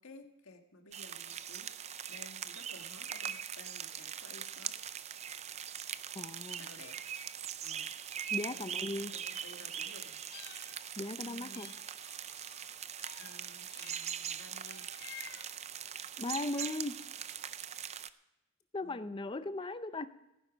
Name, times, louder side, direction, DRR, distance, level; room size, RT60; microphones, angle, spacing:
voice 1, 0.0-4.7 6.6-7.0 7.4-7.9 8.5-10.2 11.1-11.8 13.2-14.8 18.8-19.1 19.6-19.7, left 2 dB, 85° left, 5 dB, 1.6 m, -55 dB
sound 1, 0.9-18.1, right 9 dB, 30° right, 0.4 m, -41 dB
voice 2, 6.1-6.7 8.3-9.1 11.0-11.7 16.2-17.0 18.7-20.1, left 2 dB, 25° left, 12 dB, 0.6 m, -38 dB
Meow, 9.8-11.2 11.5-14.3 14.6-15.6 16.2-17.0, left 8 dB, 55° left, 1.1 m, -54 dB
15.5 x 10.0 x 5.1 m, 0.92 s
head